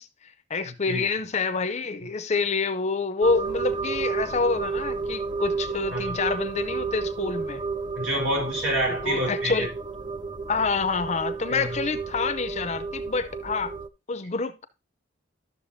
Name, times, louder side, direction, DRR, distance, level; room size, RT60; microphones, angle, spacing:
voice 1, 0.0-7.6 9.0-9.7 10.5-13.7 14.1-14.6, left 4 dB, 35° left, 0.6 m, -27 dB
voice 2, 0.6-1.0 5.9-6.2 8.0-9.7 11.5-11.8, equal, 90° right, 4.0 m, -28 dB
sound 1, 3.2-13.9, right 4 dB, 25° right, 0.5 m, -31 dB
12.0 x 6.7 x 2.7 m
head